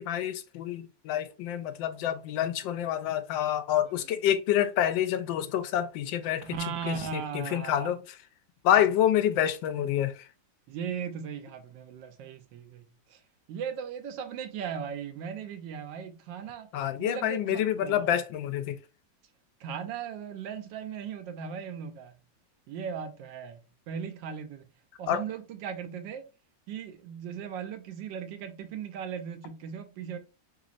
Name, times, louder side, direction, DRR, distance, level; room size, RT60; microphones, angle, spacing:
voice 1, 0.0-6.4 6.9-8.0 8.6-10.3 16.7-18.8 25.1-25.2, left 10 dB, 90° left, 1.3 m, -27 dB
voice 2, 6.4-7.9 10.7-13.2 13.5-16.7 17.0-18.1 19.6-22.2 22.7-24.7 25.0-26.2 26.7-30.2, right 7 dB, 80° right, 1.4 m, -38 dB
4.0 x 3.4 x 2.4 m
omnidirectional pair, 2.0 m